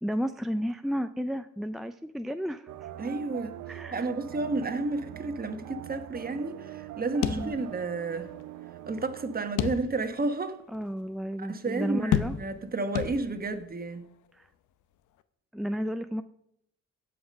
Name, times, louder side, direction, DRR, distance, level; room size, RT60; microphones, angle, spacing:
voice 1, 0.0-2.9 3.7-4.1 7.2-7.5 10.7-12.4 14.3-14.5 15.5-16.2, equal, ahead, 8 dB, 0.4 m, -32 dB
sound 1, 2.7-9.5, right 12 dB, 75° right, 0.7 m, -43 dB
voice 2, 3.0-8.3 8.9-10.6 11.4-14.1, right 3 dB, 30° right, 8 dB, 1.3 m, -32 dB
sound 2, 7.2-8.1 8.4-8.5 9.6-10.2 10.7-10.8 12.1-12.7 13.0-13.6, left 10 dB, 80° left, 0.7 m, -30 dB
16.0 x 5.9 x 5.3 m, 0.74 s
cardioid pair, 90°, 30 cm